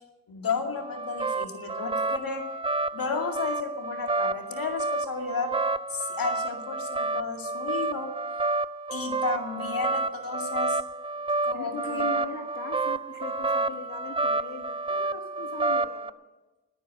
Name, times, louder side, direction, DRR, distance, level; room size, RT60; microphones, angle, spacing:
voice 1, 0.3-2.5 2.9-5.5 5.9-8.1 8.9-10.8 11.4-12.0, left 4 dB, 75° left, 4 dB, 2.3 m, -32 dB
sound 1, 0.7-16.1, right 3 dB, 15° right, 0.4 m, -30 dB
voice 2, 11.5-16.1, left 3 dB, 55° left, 2 dB, 1.5 m, -39 dB
20.0 x 9.5 x 6.4 m, 1.1 s
wide cardioid pair, 95°, 35 cm